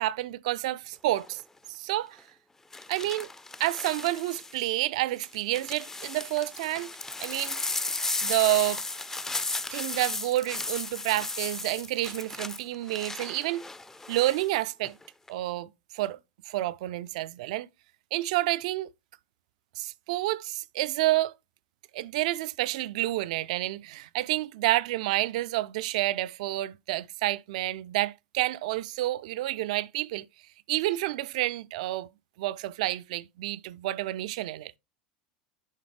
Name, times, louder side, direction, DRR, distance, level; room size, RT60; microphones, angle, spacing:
voice 1, 0.0-1.4 1.7-2.2 2.9-3.3 3.6-6.9 7.2-7.6 8.2-8.8 9.7-13.7 14.1-15.0 15.3-16.2 16.5-17.7 18.1-18.9 19.8-21.3 21.9-30.3 30.7-32.1 32.4-34.8, right 16 dB, 55° right, 0.4 m, -29 dB
sound 1, 1.1-1.4 2.7-4.6 5.2-14.5 14.8-15.3, left 2 dB, 10° left, 0.5 m, -35 dB
11.0 x 3.7 x 3.2 m
figure-of-eight pair, 80°, 4 cm